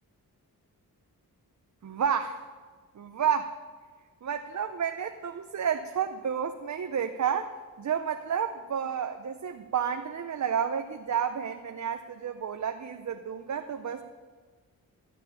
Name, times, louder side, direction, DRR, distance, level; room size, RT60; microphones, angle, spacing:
voice 1, 1.8-2.4 3.0-3.5 4.2-7.5 7.8-14.0, right 8 dB, 50° right, 7 dB, 0.7 m, -30 dB
13.5 x 6.5 x 9.9 m, 1.5 s
cardioid pair, 80°, 36 cm